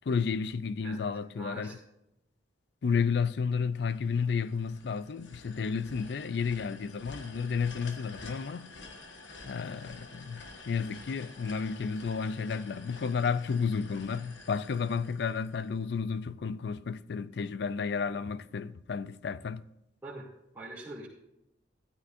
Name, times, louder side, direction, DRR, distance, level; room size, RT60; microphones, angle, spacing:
voice 1, 0.1-1.8 2.8-8.7 9.4-19.6, left 5 dB, 60° left, 0.4 m, -32 dB
voice 2, 1.3-1.8 20.0-20.3 20.5-21.1, right 2 dB, 10° right, 2.3 m, -43 dB
sound 1, 3.9-16.0, left 3 dB, 75° left, 1.4 m, -50 dB
13.0 x 13.0 x 2.6 m
head